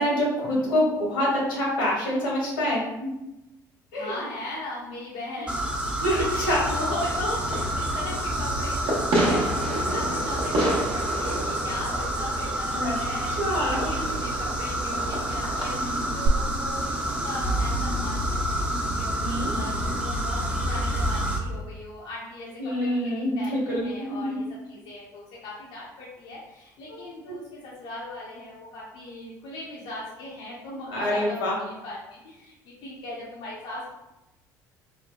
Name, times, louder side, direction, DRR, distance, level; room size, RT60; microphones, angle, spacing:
voice 1, 0.0-3.1 3.9-4.1 6.0-6.1 6.5-6.6 12.7-12.9 13.4-13.9 19.2-19.5 22.6-24.4 26.9-27.0 30.9-31.5, equal, 80° left, -4 dB, 1.1 m, -26 dB
voice 2, 3.9-5.6 5.9-33.9, left 2 dB, 60° left, -5 dB, 0.6 m, -38 dB
sound 1, 5.5-21.4, right 1 dB, 10° right, 0.6 m, -28 dB
Fireworks, 6.3-16.3, right 2 dB, 55° right, 1.0 m, -31 dB
4.2 x 2.1 x 2.2 m, 0.94 s
hypercardioid pair, 60°, 10 cm